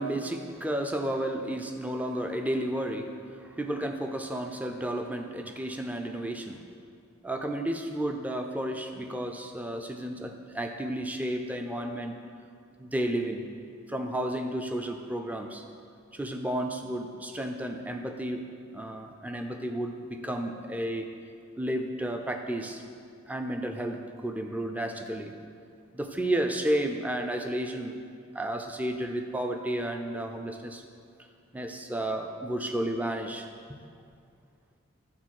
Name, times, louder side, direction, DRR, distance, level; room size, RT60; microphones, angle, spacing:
voice 1, 0.0-6.6 7.2-12.2 12.8-13.5 13.9-15.6 16.1-21.1 21.6-22.8 23.3-25.3 25.9-28.0 28.3-30.8 31.5-33.5, right 1 dB, 5° right, 4 dB, 0.4 m, -32 dB
8.6 x 3.9 x 6.3 m, 2.3 s
head